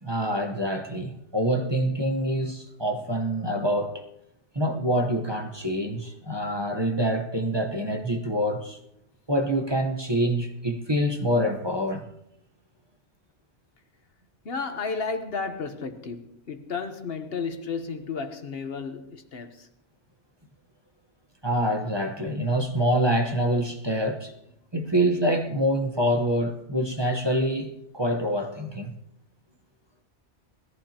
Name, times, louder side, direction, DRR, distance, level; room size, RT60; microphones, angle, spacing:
voice 1, 0.0-4.0 4.5-8.8 9.3-12.0 21.4-24.3 24.7-28.9, equal, 25° right, 1.1 m, -26 dB
voice 2, 14.4-19.7, left 5 dB, 65° left, 1.2 m, -33 dB
21.0 x 14.5 x 2.9 m
omnidirectional pair, 1.1 m